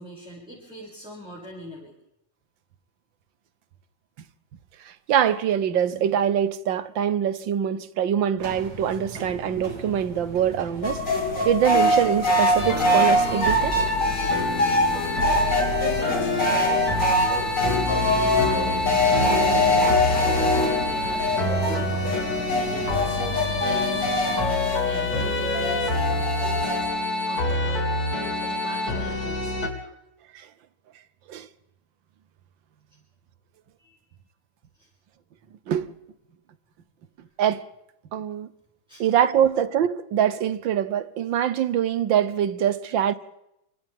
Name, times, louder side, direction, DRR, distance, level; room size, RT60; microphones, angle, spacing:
voice 1, 0.0-1.9 15.4-17.2 17.8-21.3 22.5-29.6 33.8-34.0 34.7-34.9 38.9-39.1, right 1 dB, 5° right, 7.0 m, -41 dB
voice 2, 4.8-11.0 11.5-13.8 30.3-30.5 31.3-31.5 35.7-35.9 37.4-37.7 38.1-38.5 39.0-43.1, right 9 dB, 85° right, 1.7 m, -24 dB
sound 1, 8.4-24.4, right 2 dB, 60° right, 3.5 m, -38 dB
sound 2, 10.8-26.8, left 1 dB, 70° left, 4.0 m, -24 dB
sound 3, 12.6-29.7, left 1 dB, 55° left, 3.5 m, -27 dB
29.5 x 26.0 x 3.7 m
omnidirectional pair, 2.0 m